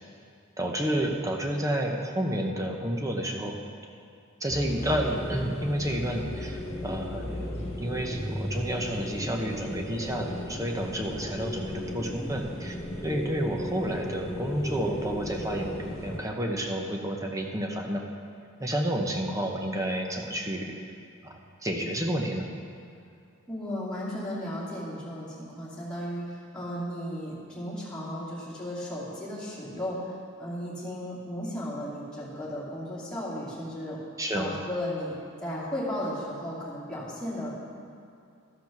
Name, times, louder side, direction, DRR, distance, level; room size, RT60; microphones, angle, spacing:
voice 1, 0.6-3.6 4.4-12.8 13.0-15.7 16.0-18.0 18.6-20.7 21.2-21.3 21.6-22.5 34.2-34.5, right 1 dB, 15° right, 1 dB, 0.9 m, -30 dB
sound 1, 4.5-16.2, left 1 dB, 30° left, 1.7 m, -35 dB
voice 2, 23.5-30.0 30.4-34.0 34.3-35.1 35.4-37.7, left 1 dB, 5° left, -9 dB, 2.5 m, -35 dB
13.5 x 5.1 x 6.0 m, 2.4 s
head